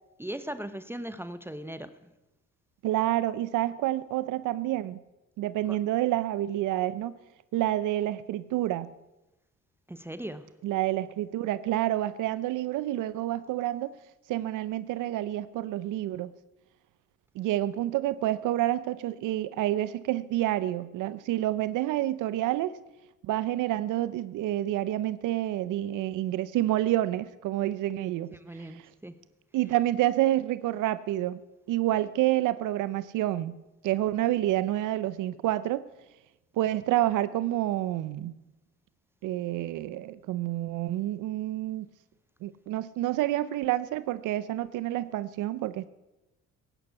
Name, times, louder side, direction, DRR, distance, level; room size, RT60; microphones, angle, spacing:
voice 1, 0.2-2.0 5.7-5.8 9.9-10.5 28.3-29.2, right 1 dB, 10° right, 12 dB, 0.9 m, -38 dB
voice 2, 2.8-5.0 5.4-7.2 7.5-8.9 10.6-13.9 14.3-16.3 17.4-22.8 23.2-28.3 28.5-28.9 29.5-31.4 31.7-33.6 33.8-35.8 36.6-38.3 39.2-41.9 42.4-45.9, right 14 dB, 85° right, 16 dB, 0.7 m, -28 dB
17.0 x 10.0 x 8.2 m, 1.0 s
cardioid pair, 90°, 30 cm